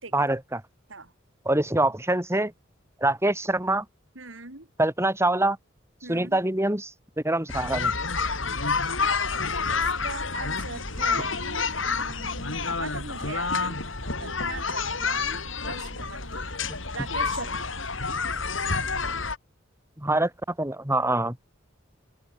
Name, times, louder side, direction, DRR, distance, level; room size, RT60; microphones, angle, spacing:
voice 1, 0.1-0.6 1.5-2.5 3.0-3.9 4.8-5.6 6.1-6.9 7.2-7.9 20.0-20.3 20.6-21.4, right 2 dB, 15° right, 3.8 m, -24 dB
voice 2, 4.2-4.7 6.0-6.4 9.8-13.8 14.2-16.6 16.9-17.7, right 3 dB, 75° right, 4.2 m, -40 dB
sound 1, 7.5-19.4, left 4 dB, 75° left, 7.7 m, -29 dB
open air
head